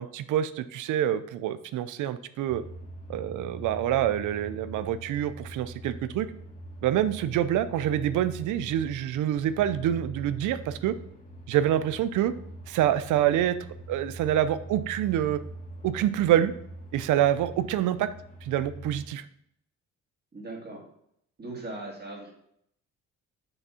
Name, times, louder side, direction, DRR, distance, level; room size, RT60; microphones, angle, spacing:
voice 1, 0.0-2.6 3.1-6.3 6.8-11.0 11.5-12.3 12.7-13.6 13.9-15.4 15.8-16.5 16.9-18.1 18.4-19.2, right 11 dB, 80° right, 14 dB, 0.6 m, -26 dB
sound 1, 2.5-19.1, right 1 dB, 25° left, 1.9 m, -43 dB
voice 2, 20.3-20.8 21.4-22.3, right 2 dB, 35° right, 0 dB, 2.3 m, -39 dB
7.0 x 3.5 x 5.6 m, 0.72 s
cardioid pair, 90°, 30 cm